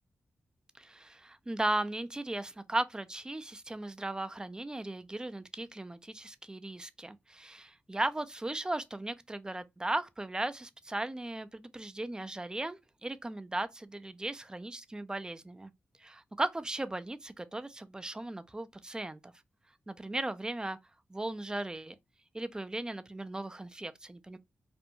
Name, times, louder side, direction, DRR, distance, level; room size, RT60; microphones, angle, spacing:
voice 1, 0.8-15.7 16.0-19.3 19.9-20.8 21.1-21.9 22.3-24.4, right 2 dB, 15° right, 0.4 m, -37 dB
2.5 x 2.2 x 2.8 m
cardioid pair, 60°, 5 cm